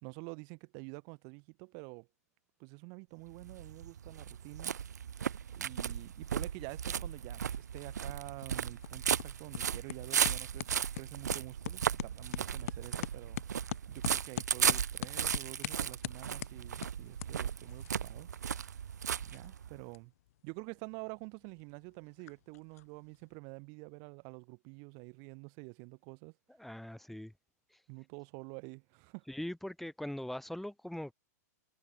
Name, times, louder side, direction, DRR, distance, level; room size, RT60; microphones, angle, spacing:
voice 1, 0.0-2.1 2.6-4.8 5.5-13.4 13.9-18.3 19.2-20.1 20.4-26.4 27.9-29.3, right 39 dB, 45° right, 2.6 m, -48 dB
sound 1, 3.3-19.8, right 8 dB, 90° right, 0.5 m, -36 dB
sound 2, 7.5-23.4, left 14 dB, 60° left, 1.1 m, -46 dB
voice 2, 26.6-27.3 27.7-27.8 29.3-31.1, left 1 dB, ahead, 1.8 m, -41 dB
hypercardioid pair, 125°, 9 cm